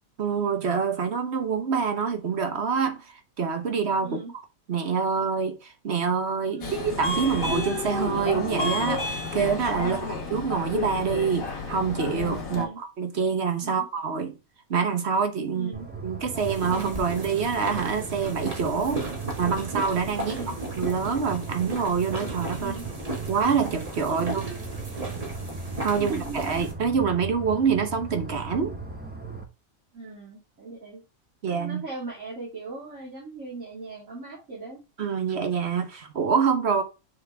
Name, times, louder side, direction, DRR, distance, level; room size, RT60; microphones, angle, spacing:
voice 1, 0.2-4.2 4.7-14.4 14.7-15.7 16.0-19.0 19.4-20.4 20.8-22.7 23.3-24.5 25.8-28.8 31.4-31.8 35.0-36.8, right 6 dB, 50° right, 1.2 m, -26 dB
voice 2, 4.0-4.3 6.5-6.8 9.8-10.0 12.5-12.8 13.6-13.8 15.5-15.9 19.0-19.1 20.3-20.5 22.6-22.8 24.1-24.6 25.9-26.6 29.9-31.0 31.5-34.8, right 3 dB, 70° right, 3.0 m, -38 dB
Subway metro underground, 6.6-12.6, left 3 dB, 80° left, 2.1 m, -31 dB
sound 1, 15.7-29.4, right 4 dB, 10° right, 0.9 m, -38 dB
sound 2, 16.3-26.7, right 2 dB, 25° right, 1.8 m, -35 dB
6.5 x 4.2 x 3.5 m
omnidirectional pair, 1.4 m